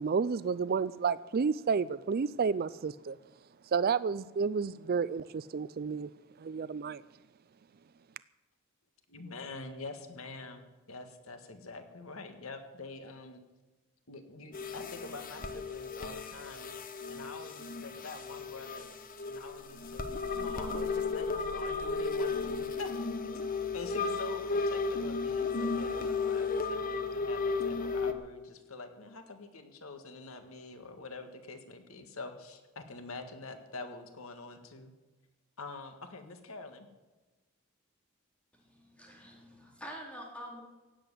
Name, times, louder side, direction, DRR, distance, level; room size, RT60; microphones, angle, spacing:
voice 1, 0.0-3.2 3.7-6.1 6.4-7.0, right 5 dB, 45° right, 17 dB, 0.4 m, -31 dB
voice 2, 9.1-13.4 14.1-16.7 17.1-18.9 19.2-22.9 23.2-23.4 23.7-34.9 35.6-36.9, left 3 dB, 75° left, 7 dB, 1.8 m, -46 dB
sound 1, 14.5-28.1, left 4 dB, 40° left, 1.1 m, -34 dB
voice 3, 38.5-40.6, equal, 5° left, -1 dB, 3.8 m, -46 dB
16.5 x 7.9 x 9.8 m, 1.2 s
head